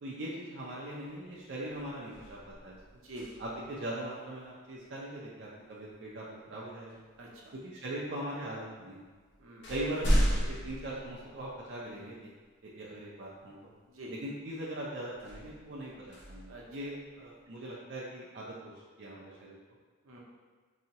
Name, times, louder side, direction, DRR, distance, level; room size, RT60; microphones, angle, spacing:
voice 1, 0.0-2.8 3.4-7.0 7.5-9.1 9.7-12.3 12.6-13.6 14.1-19.6, right 1 dB, 55° right, -6 dB, 0.5 m, -40 dB
sound 1, 1.0-1.3 1.7-3.8 5.9-6.1 6.9-7.7 8.5-8.6 9.0-11.9 12.4-12.5 15.1-17.3, equal, 55° left, 0.7 m, -34 dB
voice 2, 3.0-3.4 7.2-7.5 9.4-9.7 13.9-14.1 16.5-16.9 20.0-20.2, right 1 dB, 80° right, -3 dB, 0.8 m, -46 dB
4.0 x 2.7 x 2.8 m, 1.5 s
head